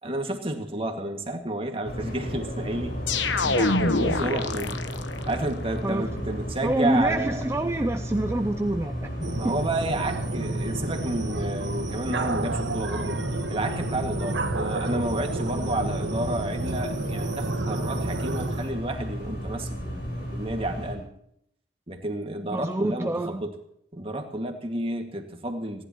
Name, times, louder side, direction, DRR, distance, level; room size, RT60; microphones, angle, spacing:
voice 1, 0.0-3.0 3.4-4.8 5.3-7.4 9.3-13.2 13.5-21.1 21.9-23.5 23.9-25.8, right 1 dB, 30° right, 4 dB, 2.0 m, -31 dB
sound 1, 1.8-20.9, equal, 55° left, 4.8 m, -34 dB
sound 2, 3.1-5.3, left 3 dB, 80° left, 1.2 m, -25 dB
voice 2, 5.8-6.3 6.6-9.5 22.5-23.4, right 1 dB, 15° right, 7 dB, 0.5 m, -27 dB
sound 3, 9.2-18.7, right 2 dB, 75° right, 1.5 m, -31 dB
30.0 x 11.0 x 3.0 m, 0.72 s
head